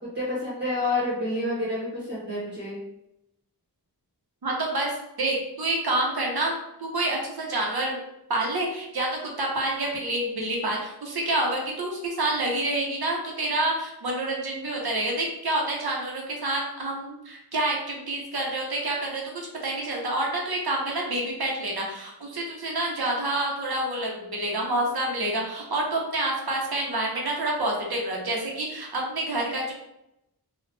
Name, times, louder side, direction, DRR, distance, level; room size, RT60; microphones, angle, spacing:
voice 1, 0.1-2.8, left 2 dB, 25° right, -8 dB, 1.1 m, -28 dB
voice 2, 4.4-4.9 5.2-6.5 6.8-8.0 8.3-29.7, right 1 dB, 65° right, -1 dB, 0.9 m, -28 dB
2.9 x 2.4 x 3.2 m, 0.85 s
wide cardioid pair, 60°, 40 cm